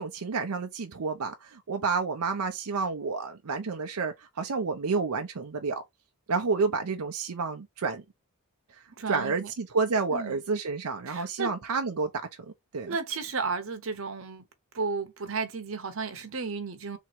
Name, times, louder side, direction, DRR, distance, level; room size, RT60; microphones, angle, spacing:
voice 1, 0.0-5.8 6.3-8.0 9.1-12.1 12.4-13.0, right 4 dB, 85° right, 0.6 m, -30 dB
voice 2, 9.0-9.5 10.1-10.4 11.1-11.5 12.8-14.4 14.7-17.0, right 4 dB, 65° right, 0.9 m, -33 dB
3.5 x 3.0 x 4.4 m
head